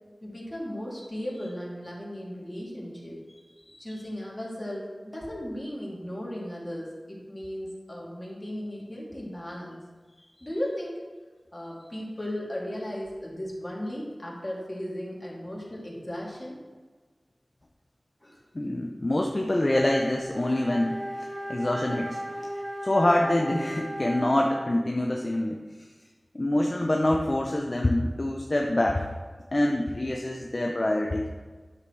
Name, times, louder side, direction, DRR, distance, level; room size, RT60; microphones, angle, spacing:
voice 1, 0.2-3.2 3.8-9.8 10.4-11.0 11.5-16.6 18.2-18.4 22.2-22.5 24.1-24.2, equal, 25° left, -4 dB, 2.6 m, -36 dB
voice 2, 18.5-21.0 21.5-22.2 22.8-25.6 26.3-29.1 29.5-31.3, left 1 dB, 45° left, 1 dB, 0.7 m, -25 dB
Wind instrument woodwind instrument, 19.6-24.8, equal, 15° right, 1.4 m, -35 dB
9.5 x 7.1 x 3.3 m, 1.4 s
wide cardioid pair, 40°, 0 cm